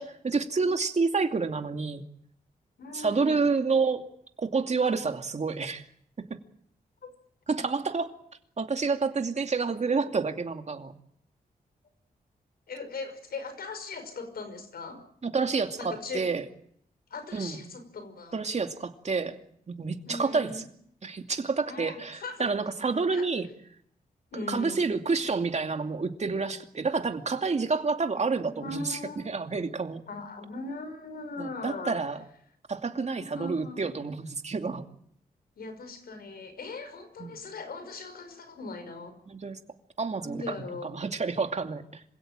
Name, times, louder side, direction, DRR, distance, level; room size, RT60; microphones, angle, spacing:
voice 1, 0.0-2.0 2.9-4.0 4.4-5.8 6.2-6.4 7.5-8.1 8.6-10.9 15.2-16.4 17.3-17.6 18.3-19.4 19.7-20.6 21.0-23.5 24.5-29.0 29.3-30.0 31.4-32.2 32.7-34.8 37.2-37.4 39.3-39.6 40.0-40.5 40.8-42.0, right 4 dB, 45° right, 6 dB, 2.6 m, -29 dB
voice 2, 2.8-3.5 12.7-15.0 15.8-16.2 17.1-18.4 20.1-20.6 21.7-22.5 23.1-23.3 24.3-24.9 28.5-29.3 30.1-32.0 33.2-33.8 35.6-39.2 40.2-40.9, left 3 dB, 80° left, 10 dB, 5.7 m, -39 dB
26.5 x 17.0 x 9.0 m, 0.68 s
cardioid pair, 75°, 16 cm